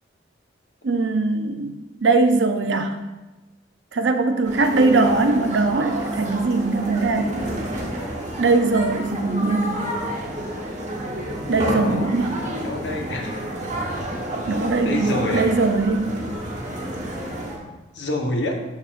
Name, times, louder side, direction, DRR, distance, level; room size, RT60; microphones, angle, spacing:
voice 1, 0.8-2.9 3.9-7.3 8.4-9.9 11.5-12.3 14.5-16.1, right 3 dB, 90° right, 6 dB, 0.6 m, -21 dB
sound 1, 4.4-17.6, right 1 dB, 45° right, 1.2 m, -30 dB
voice 2, 11.4-12.1 12.3-13.3 13.9-14.0 14.8-15.5 17.9-18.6, left 1 dB, 75° left, 2 dB, 1.0 m, -28 dB
12.0 x 4.2 x 2.5 m, 1.1 s
head